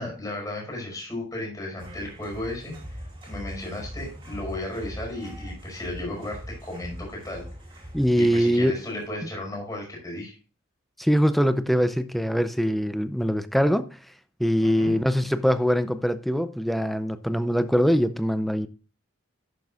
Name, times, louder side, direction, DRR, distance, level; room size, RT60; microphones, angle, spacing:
voice 1, 0.0-2.7 3.2-7.4 8.2-10.4 14.6-15.0, left 1 dB, 15° left, 5.3 m, -34 dB
sound 1, 1.8-9.0, equal, 25° right, 2.6 m, -41 dB
voice 2, 7.9-8.8 11.0-14.0 14.4-18.7, equal, ahead, 0.5 m, -23 dB
11.5 x 9.2 x 2.4 m
head